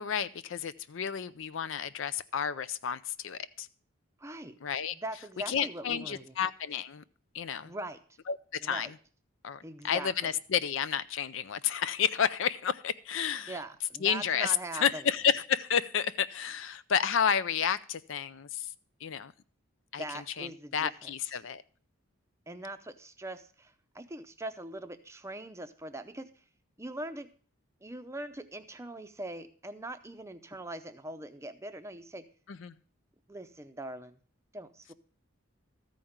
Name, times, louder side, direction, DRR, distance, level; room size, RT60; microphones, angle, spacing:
voice 1, 0.0-3.7 4.6-4.9 5.5-7.0 7.3-7.7 8.3-8.9 9.4-13.6 14.0-18.7 19.0-19.3 19.9-21.6 32.5-32.7, left 7 dB, 65° left, 16 dB, 0.5 m, -31 dB
voice 2, 4.2-4.6 4.9-6.3 7.6-8.0 8.6-8.9 9.6-10.3 13.5-15.0 20.0-21.1 22.5-26.3 26.8-27.3 27.8-32.2 33.3-34.2 34.5-34.9, right 1 dB, 15° right, 9 dB, 0.6 m, -41 dB
13.5 x 5.1 x 7.1 m, 0.42 s
head